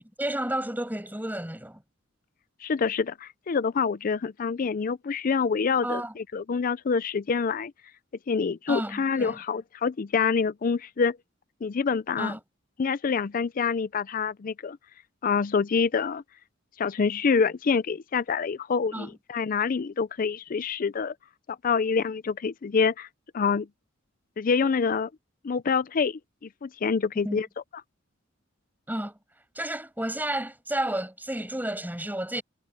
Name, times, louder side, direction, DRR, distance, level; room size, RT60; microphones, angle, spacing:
voice 1, 0.2-1.8 5.8-6.1 8.7-9.4 12.2-12.4 18.9-19.1 27.2-27.4 28.9-29.2 29.6-32.4, right 1 dB, 10° right, 6.7 m, -31 dB
voice 2, 2.6-7.7 8.3-11.2 11.6-12.3 12.8-14.8 15.2-16.2 16.8-21.1 21.5-23.1 23.3-23.7 24.4-25.1 25.4-27.5, left 5 dB, 45° left, 0.4 m, -26 dB
head